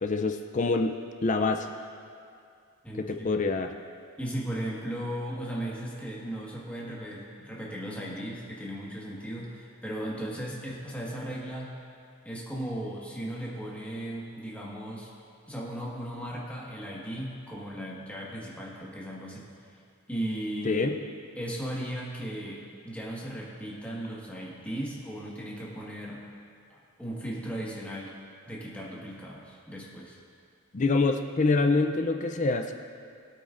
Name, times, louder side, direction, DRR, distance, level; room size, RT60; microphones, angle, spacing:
voice 1, 0.0-0.9 1.2-1.7 3.1-3.7 20.6-21.0 30.7-32.7, left 3 dB, 35° left, 5 dB, 0.5 m, -25 dB
voice 2, 2.8-3.4 4.2-11.7 12.2-15.1 15.5-19.5 20.1-20.8 21.3-26.2 26.7-28.1 28.5-30.2, right 1 dB, 5° left, -5 dB, 1.6 m, -36 dB
21.0 x 8.4 x 2.6 m, 2.3 s
head